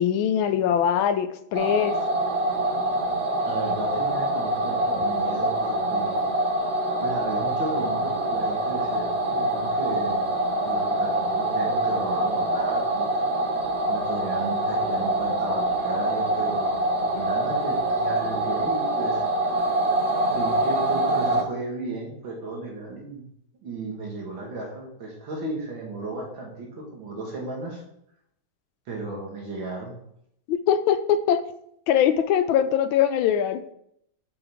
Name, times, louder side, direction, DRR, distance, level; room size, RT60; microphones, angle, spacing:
voice 1, 0.0-2.0 30.5-31.4 31.9-33.6, left 9 dB, 85° left, 10 dB, 1.3 m, -22 dB
sound 1, 1.5-21.4, right 1 dB, 45° right, 0.9 m, -25 dB
voice 2, 3.5-6.2 7.0-10.3 10.6-13.2 13.9-19.3 20.3-23.2 23.6-27.8 28.9-29.9, right 2 dB, 70° right, -1 dB, 2.5 m, -34 dB
7.0 x 5.7 x 3.6 m, 0.74 s
omnidirectional pair, 2.2 m